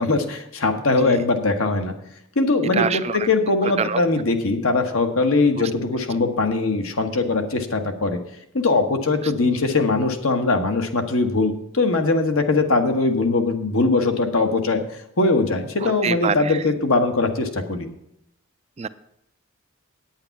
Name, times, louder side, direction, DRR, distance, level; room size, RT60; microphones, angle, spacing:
voice 1, 0.0-1.9 2.3-8.2 8.5-17.9, left 3 dB, 70° left, 5 dB, 1.2 m, -21 dB
voice 2, 2.7-3.3 3.8-4.0 5.6-5.7 15.8-16.6 18.8-18.9, right 6 dB, 30° right, 14 dB, 0.4 m, -25 dB
9.0 x 8.8 x 5.8 m, 0.78 s
head